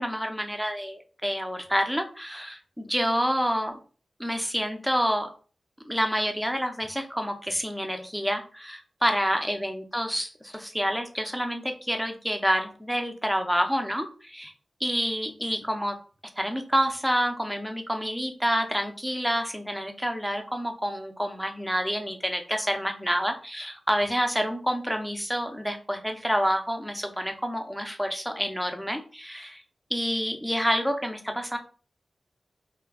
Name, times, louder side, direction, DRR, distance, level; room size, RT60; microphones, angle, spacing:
voice 1, 0.0-3.7 4.2-5.3 5.9-14.5 14.8-16.0 16.4-29.6 29.9-31.6, equal, ahead, 5 dB, 0.5 m, -28 dB
2.7 x 2.3 x 3.4 m, 0.39 s
wide cardioid pair, 105°, 0 cm